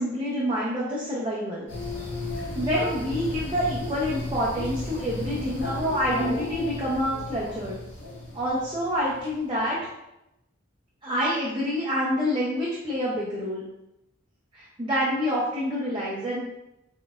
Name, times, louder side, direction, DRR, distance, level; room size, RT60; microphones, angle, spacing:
voice 1, 0.0-1.7 2.3-7.8 8.3-9.8 11.0-13.6 14.5-16.4, equal, 25° right, -7 dB, 0.6 m, -27 dB
sound 1, 1.7-9.3, left 1 dB, 60° left, 1.5 m, -34 dB
4.0 x 3.9 x 2.4 m, 0.88 s
head